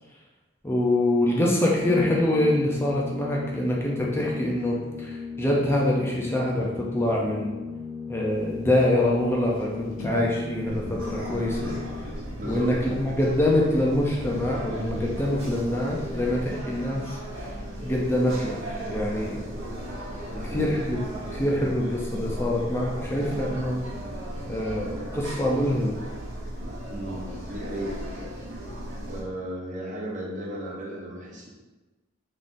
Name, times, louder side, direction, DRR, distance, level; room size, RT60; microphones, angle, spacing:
voice 1, 0.6-7.5 8.1-11.8 12.4-17.5 17.8-19.4 20.5-21.0 21.3-23.8 24.5-25.9, left 1 dB, 10° left, -3 dB, 0.5 m, -25 dB
Organ, 1.6-12.3, left 5 dB, 50° left, 1.2 m, -37 dB
sound 1, 8.3-16.4, left 1 dB, 80° left, 0.8 m, -44 dB
sound 2, 10.7-29.2, right 1 dB, 70° right, 1.1 m, -36 dB
voice 2, 12.4-12.7 20.3-20.7 26.9-28.0 29.1-31.5, right 1 dB, 40° right, -4 dB, 0.9 m, -35 dB
3.7 x 3.6 x 2.6 m, 1.2 s
head